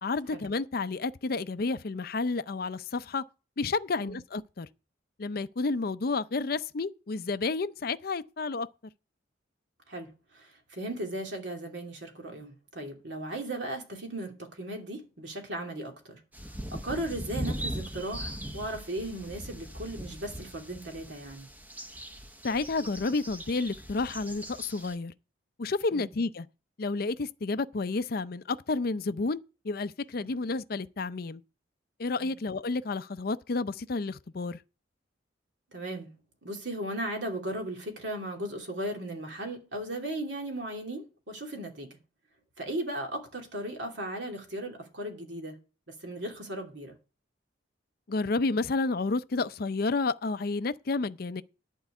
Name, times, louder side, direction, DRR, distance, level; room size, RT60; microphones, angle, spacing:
voice 1, 0.0-3.2 3.6-4.7 5.2-8.7 22.4-25.1 25.6-26.5 26.8-29.4 29.6-31.4 32.0-34.6 48.1-51.4, left 3 dB, 50° left, 0.5 m, -30 dB
voice 2, 9.9-21.5 25.9-26.1 30.2-30.3 32.2-32.3 35.7-36.1 36.4-41.9 42.6-45.6 45.9-46.9, right 1 dB, 70° right, 2.8 m, -37 dB
sound 1, 16.3-24.9, equal, 10° right, 0.9 m, -40 dB
11.5 x 4.6 x 8.3 m
head